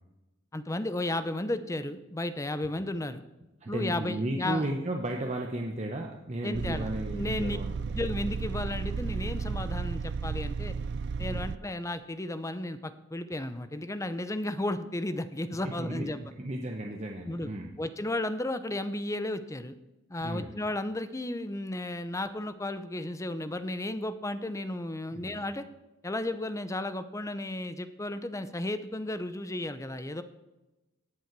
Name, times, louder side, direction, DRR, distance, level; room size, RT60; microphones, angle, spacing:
voice 1, 0.5-3.2 3.7-4.7 6.4-7.6 7.9-10.7 11.2-16.2 17.3-17.5 17.8-19.8 20.1-25.7 26.0-30.2, left 1 dB, 15° left, 11 dB, 0.6 m, -34 dB
voice 2, 3.6-7.8 11.3-11.5 15.8-16.1 16.4-17.8 20.2-20.5 25.1-25.4, right 1 dB, 35° right, 2 dB, 1.0 m, -34 dB
sound 1, 6.5-11.6, right 5 dB, 60° right, 0.4 m, -33 dB
17.5 x 7.7 x 4.6 m, 1.0 s
head